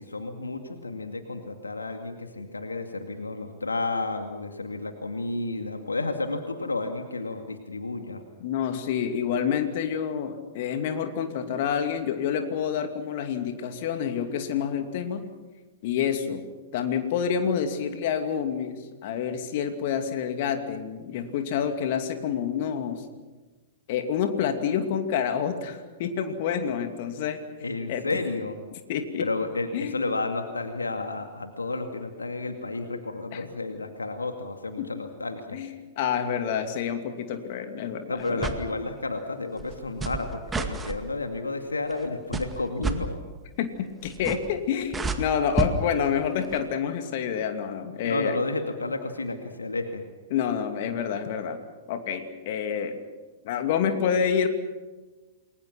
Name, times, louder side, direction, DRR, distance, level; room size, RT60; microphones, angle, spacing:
voice 1, 0.0-8.2 27.6-28.6 29.2-35.6 38.1-43.2 48.0-50.0, left 3 dB, 80° left, 6 dB, 2.3 m, -31 dB
voice 2, 8.4-15.3 15.8-16.5 16.7-23.0 23.9-27.4 27.9-28.2 28.9-29.3 29.7-30.0 33.3-33.4 34.8-34.9 35.5-38.5 43.6-48.4 50.3-51.6 51.9-53.0 53.4-54.5, left 7 dB, 50° left, 7 dB, 2.6 m, -28 dB
sound 1, 38.3-38.7 39.6-41.0 41.9-42.1 42.3-43.0 44.0-44.6 44.8-45.7 46.4-46.6, right 4 dB, 15° right, 2.0 m, -30 dB
28.5 x 22.0 x 6.0 m, 1.2 s
figure-of-eight pair, 105°, 0 cm